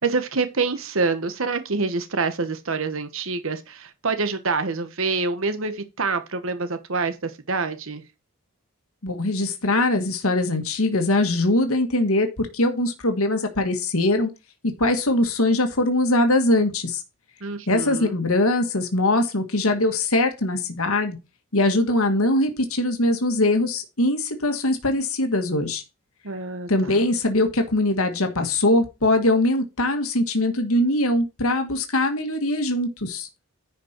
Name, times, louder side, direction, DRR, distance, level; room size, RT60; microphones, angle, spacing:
voice 1, 0.0-8.0 17.4-18.1 26.2-27.0, right 4 dB, 65° right, 1.1 m, -26 dB
voice 2, 9.0-14.3 14.6-17.0 17.7-21.2 21.5-25.8 26.7-33.3, left 1 dB, 75° left, 1.8 m, -22 dB
10.5 x 5.2 x 4.5 m
head